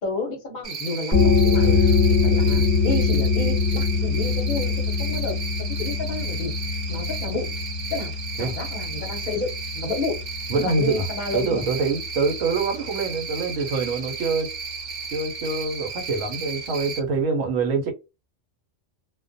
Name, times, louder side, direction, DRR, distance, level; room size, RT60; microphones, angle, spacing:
voice 1, 0.0-1.9 2.2-4.7 5.0-5.4 5.8-6.5 6.9-7.5 7.9-8.1 8.4-10.2 10.5-11.6, left 3 dB, 50° left, 0.7 m, -30 dB
Cricket, 0.6-17.0, right 5 dB, 50° right, 0.9 m, -34 dB
sound 1, 1.1-12.5, left 5 dB, 15° left, 0.8 m, -23 dB
voice 2, 10.5-11.1 11.3-14.5 15.1-17.9, right 4 dB, 85° right, 1.1 m, -25 dB
2.4 x 2.1 x 2.5 m
omnidirectional pair, 1.3 m